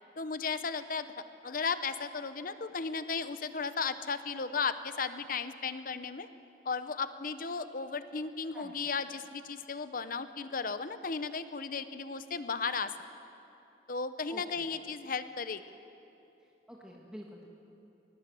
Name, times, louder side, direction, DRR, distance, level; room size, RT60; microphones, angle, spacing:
voice 1, 0.2-1.1 1.4-6.3 6.6-12.9 13.9-15.6, left 5 dB, 50° left, 12 dB, 0.9 m, -35 dB
voice 2, 14.3-14.7 16.4-17.4, equal, 5° right, -3 dB, 1.7 m, -48 dB
21.0 x 18.5 x 7.7 m, 2.9 s
head